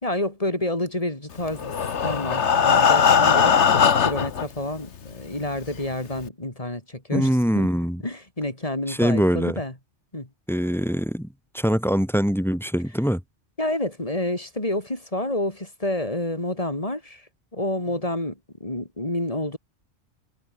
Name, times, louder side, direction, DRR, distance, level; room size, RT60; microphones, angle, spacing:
voice 1, 0.0-1.7 2.0-7.7 8.0-9.7 10.1-10.3 13.6-17.3 17.5-19.6, left 1 dB, 30° left, 4.2 m, -29 dB
Breathing, 1.5-4.5 5.2-5.3 5.7-5.8 6.2-6.3, left 7 dB, 75° left, 1.5 m, -19 dB
voice 2, 7.1-8.0 8.9-9.6 10.5-11.3 11.5-13.2, equal, ahead, 4.0 m, -23 dB
omnidirectional pair, 1.2 m